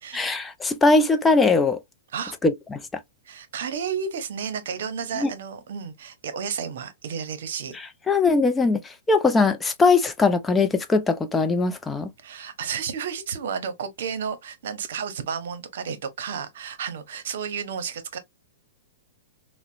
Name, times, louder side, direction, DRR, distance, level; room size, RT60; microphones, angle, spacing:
voice 1, 0.1-1.8 2.4-2.8 5.2-5.3 7.7-12.1, left 3 dB, 10° left, 0.4 m, -21 dB
voice 2, 3.3-7.8 12.2-18.2, right 6 dB, 70° right, 0.8 m, -32 dB
3.9 x 2.1 x 2.4 m
hypercardioid pair, 130°, 0 cm